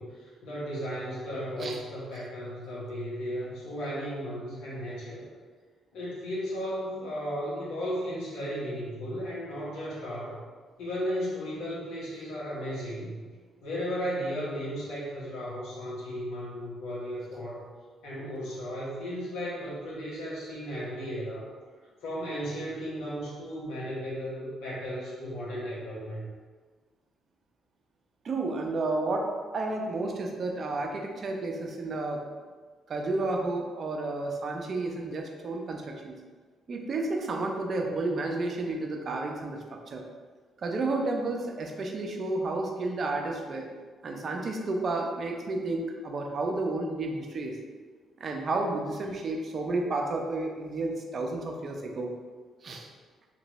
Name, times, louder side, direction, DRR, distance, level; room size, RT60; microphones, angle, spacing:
voice 1, 0.0-5.2 5.9-10.4 10.8-13.1 13.6-17.7 18.0-21.5 22.0-26.3, equal, 90° left, -7 dB, 1.2 m, -35 dB
voice 2, 28.2-29.3 29.5-32.2 32.9-36.2 36.7-40.0 40.6-43.7 44.0-47.6 48.2-52.1 52.6-52.9, right 2 dB, 50° right, 2 dB, 0.5 m, -31 dB
2.9 x 2.5 x 3.0 m, 1.5 s
cardioid pair, 90°, 0 cm